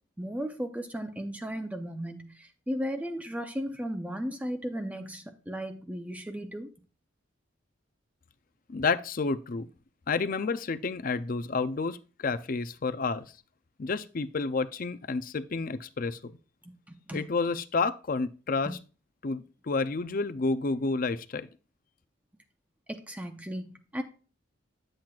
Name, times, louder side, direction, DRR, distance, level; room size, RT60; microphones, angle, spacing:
voice 1, 0.2-6.7 17.1-17.2 18.6-18.7 22.9-24.0, equal, 10° right, 5 dB, 0.6 m, -35 dB
voice 2, 8.7-9.7 10.1-12.0 12.2-13.3 13.8-16.4 17.1-18.8 19.2-21.5, left 4 dB, 45° left, 12 dB, 0.5 m, -30 dB
10.0 x 7.7 x 2.4 m, 0.35 s
head